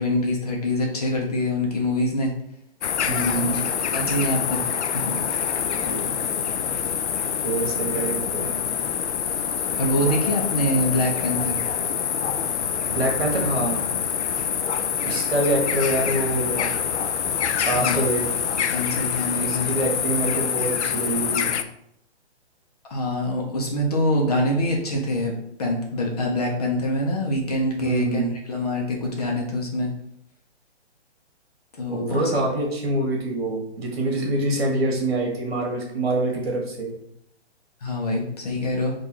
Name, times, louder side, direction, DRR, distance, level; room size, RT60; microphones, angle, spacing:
voice 1, 0.0-2.3 3.2-5.2 9.8-11.6 17.6-18.0 18.5-19.9 22.9-25.3 25.6-28.2 28.5-29.9 31.8-32.4 37.8-38.9, left 1 dB, 35° left, 0 dB, 0.8 m, -25 dB
sound 1, 2.8-21.6, left 8 dB, 85° left, 0.5 m, -26 dB
voice 2, 3.1-3.6 5.7-6.2 7.4-8.5 12.9-13.8 15.0-16.7 17.7-18.3 19.4-21.5 27.8-28.4 31.9-36.9, right 1 dB, 60° right, 0 dB, 1.6 m, -25 dB
3.8 x 2.6 x 4.4 m, 0.74 s
hypercardioid pair, 165°, 34 cm